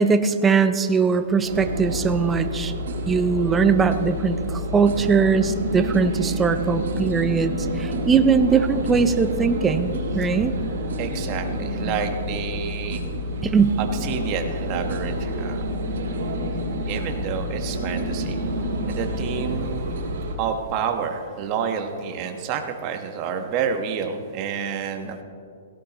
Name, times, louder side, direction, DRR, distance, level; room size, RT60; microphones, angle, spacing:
voice 1, 0.0-2.7 3.1-10.5 13.4-13.8, right 5 dB, 10° right, 9 dB, 0.6 m, -20 dB
sound 1, 1.4-20.4, equal, 70° right, 4.2 m, -28 dB
voice 2, 11.0-13.0 13.8-15.6 16.9-18.4 18.9-19.9 20.4-25.2, right 7 dB, 35° right, 5 dB, 1.3 m, -29 dB
17.5 x 17.0 x 3.1 m, 2.4 s
hypercardioid pair, 150°, 0 cm